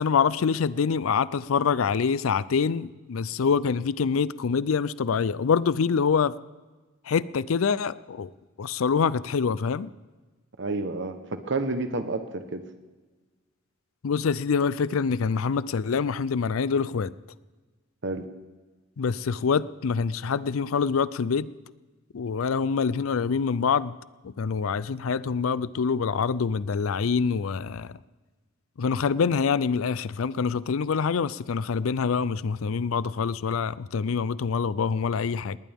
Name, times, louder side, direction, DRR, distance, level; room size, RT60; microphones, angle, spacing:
voice 1, 0.0-6.3 7.1-8.3 8.6-9.9 14.0-17.1 19.0-21.5 22.1-23.9 24.2-27.9 28.8-35.6, left 5 dB, 90° left, 0.5 m, -25 dB
voice 2, 10.6-12.6 18.0-18.3, right 3 dB, 60° right, 1.0 m, -30 dB
20.0 x 19.5 x 3.6 m
head